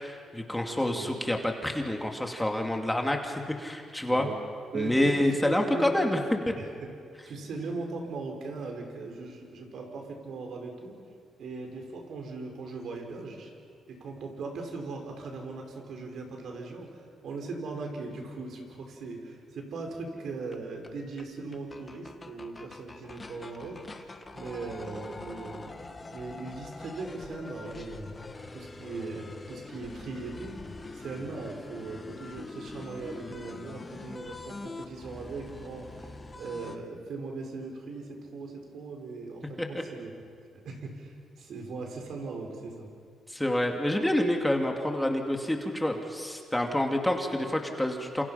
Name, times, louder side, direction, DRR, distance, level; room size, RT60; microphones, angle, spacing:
voice 1, 0.0-4.3 4.7-6.2 6.5-6.6 39.6-39.7 43.3-48.2, left 1 dB, 5° left, 3 dB, 2.5 m, -28 dB
voice 2, 0.6-1.1 4.1-4.4 4.7-5.9 6.6-6.9 7.2-11.0 11.4-13.5 13.9-28.1 28.5-30.6 30.9-40.1 40.6-42.9, right 3 dB, 65° right, 2 dB, 5.1 m, -39 dB
sound 1, 20.5-20.6 20.8-20.9 21.2-21.3 21.5-36.8, left 3 dB, 25° left, 1.7 m, -44 dB
28.0 x 28.0 x 5.8 m, 2.2 s
cardioid pair, 90°, 0 cm